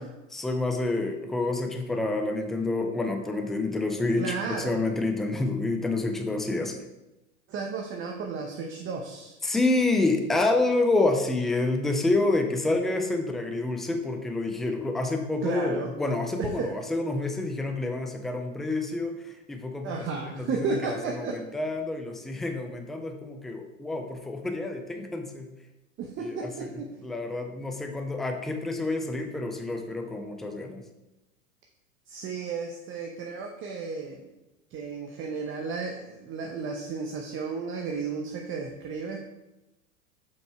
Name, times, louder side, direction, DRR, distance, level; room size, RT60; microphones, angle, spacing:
voice 1, 0.3-6.8 9.4-19.1 19.5-19.9 20.3-21.3 21.5-25.5 26.2-26.7 27.0-30.8, left 2 dB, ahead, 4 dB, 0.3 m, -28 dB
voice 2, 4.2-4.9 7.5-9.4 15.4-15.9 16.4-16.8 19.8-21.4 26.0-26.9 32.1-34.3 34.7-39.2, right 4 dB, 30° right, 1 dB, 0.9 m, -33 dB
7.3 x 5.3 x 4.4 m, 0.99 s
hypercardioid pair, 105°, 41 cm